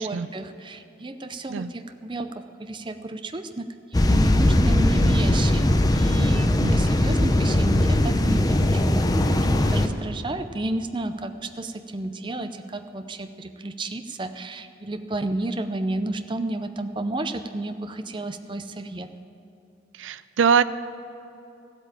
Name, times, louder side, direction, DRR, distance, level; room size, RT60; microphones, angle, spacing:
voice 1, 0.0-19.1, right 2 dB, 25° right, 9 dB, 0.5 m, -32 dB
sound 1, 3.9-9.9, left 1 dB, 20° left, 0.6 m, -20 dB
voice 2, 19.9-20.6, right 6 dB, 85° right, 15 dB, 0.4 m, -22 dB
14.5 x 8.2 x 8.7 m, 2.8 s
head